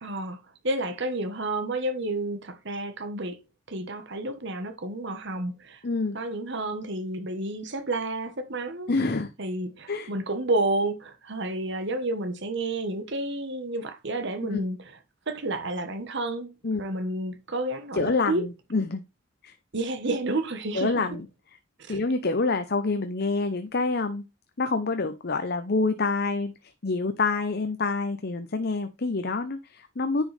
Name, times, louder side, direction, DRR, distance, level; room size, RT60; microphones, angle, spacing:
voice 1, 0.0-3.4 3.7-5.8 6.1-8.9 9.4-15.0 15.3-16.5 16.8-18.4 19.7-21.0 21.8-22.0, right 2 dB, 55° right, 1.2 m, -30 dB
voice 2, 5.8-6.2 8.9-9.3 9.9-10.1 14.5-14.6 16.6-16.8 17.9-19.0 19.4-19.5 20.7-21.3 21.9-24.2 24.6-26.5 26.8-30.2, left 3 dB, 45° left, 0.7 m, -27 dB
10.0 x 5.3 x 3.3 m
head